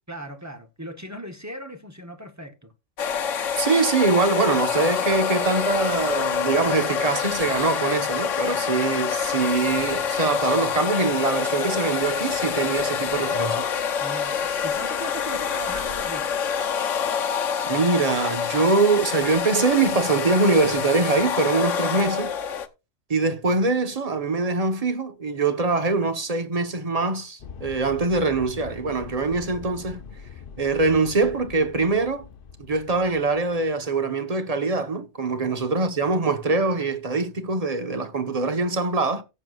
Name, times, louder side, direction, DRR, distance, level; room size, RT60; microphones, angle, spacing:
voice 1, 0.1-2.7 14.0-16.3 35.4-35.5, equal, 15° right, 0.9 m, -38 dB
sound 1, 3.0-22.7, left 7 dB, 90° left, 1.3 m, -26 dB
voice 2, 3.5-13.6 17.7-22.3 23.1-30.0 30.6-32.2 32.7-39.2, right 3 dB, 30° right, 1.2 m, -23 dB
sound 2, 27.4-33.9, left 6 dB, 50° left, 0.9 m, -42 dB
17.5 x 7.8 x 2.4 m
omnidirectional pair, 1.3 m